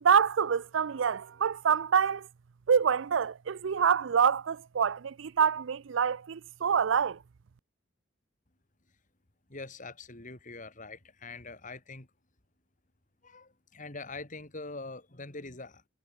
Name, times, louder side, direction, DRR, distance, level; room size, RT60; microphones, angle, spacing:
voice 1, 0.0-2.3 2.7-7.2, right 7 dB, 75° right, 0.5 m, -26 dB
voice 2, 9.5-12.1 13.2-15.8, left 3 dB, 40° left, 3.0 m, -43 dB
head